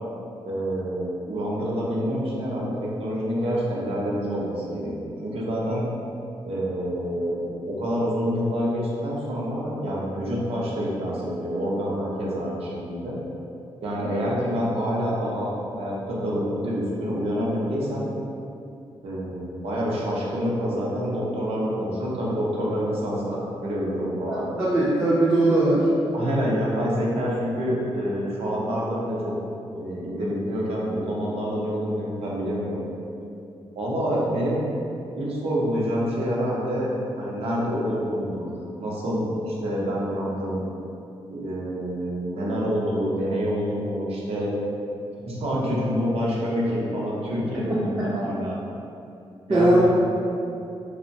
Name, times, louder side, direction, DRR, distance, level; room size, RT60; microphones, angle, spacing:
voice 1, 0.4-5.8 6.4-13.2 13.8-18.1 19.0-24.4 26.1-29.3 29.7-32.8 33.8-34.7 35.2-36.9 37.2-38.5 38.8-40.6 41.3-44.5 45.2-48.6 49.5-49.8, equal, 70° right, -5 dB, 0.6 m, -27 dB
voice 2, 24.3-25.9 47.7-47.8 49.5-49.8, right 2 dB, 15° right, -8 dB, 0.3 m, -20 dB
2.9 x 2.1 x 2.6 m, 2.6 s
wide cardioid pair, 170°, 10 cm